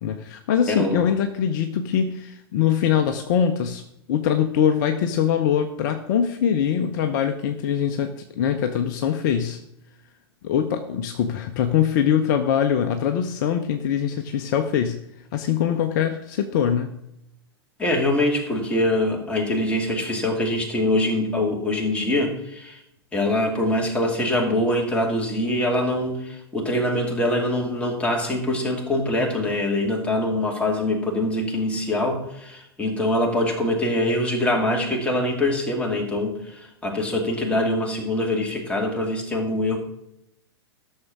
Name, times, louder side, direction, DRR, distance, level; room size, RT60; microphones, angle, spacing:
voice 1, 0.0-3.8 4.1-9.6 10.4-15.0 15.3-16.9, left 8 dB, 45° left, 7 dB, 0.9 m, -23 dB
voice 2, 0.7-1.0 17.8-22.8 23.1-39.8, left 1 dB, 10° left, 0 dB, 2.5 m, -24 dB
13.0 x 6.6 x 6.0 m, 0.81 s
figure-of-eight pair, 105°, 13 cm